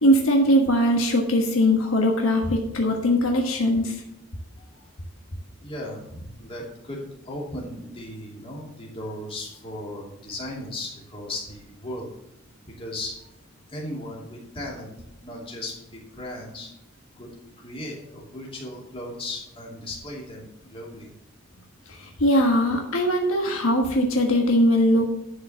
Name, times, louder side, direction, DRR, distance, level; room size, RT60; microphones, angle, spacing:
voice 1, 0.0-4.0 21.9-25.1, equal, 70° left, 1 dB, 1.4 m, -21 dB
voice 2, 5.6-12.1 12.6-13.3 13.7-14.9 15.2-16.7 17.2-17.3 17.6-21.1, left 1 dB, 25° left, -2 dB, 2.6 m, -36 dB
11.0 x 4.8 x 7.0 m, 0.83 s
head